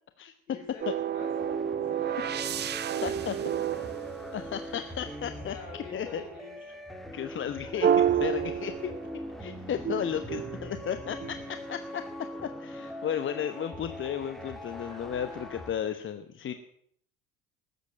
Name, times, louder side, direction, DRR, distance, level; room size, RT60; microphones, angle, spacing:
voice 1, 0.5-2.5 2.8-3.9 5.3-6.6 7.6-7.9, left 3 dB, 80° left, -2 dB, 4.3 m, -47 dB
sound 1, 0.8-5.0 7.8-9.3 9.8-11.6, right 9 dB, 25° right, 0.6 m, -30 dB
sound 2, 1.2-15.7, equal, ahead, 2.3 m, -41 dB
voice 2, 3.0-3.3 4.3-5.5 5.9-6.2 7.1-7.9 8.2-8.9 9.4-12.1 12.6-16.5, left 9 dB, 30° left, 9 dB, 1.1 m, -34 dB
19.0 x 8.2 x 8.9 m, 0.66 s
figure-of-eight pair, 65°, 40 cm